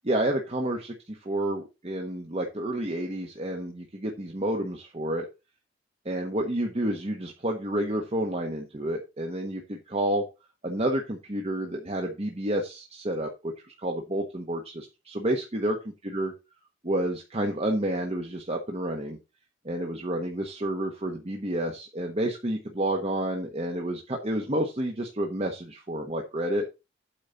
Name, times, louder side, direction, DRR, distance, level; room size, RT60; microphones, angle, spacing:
voice 1, 0.0-5.3 6.0-10.2 10.6-13.5 13.8-15.8 16.0-16.3 16.8-19.2 19.6-26.7, right 1 dB, 30° right, 2 dB, 1.2 m, -30 dB
8.7 x 4.1 x 6.9 m, 0.27 s
head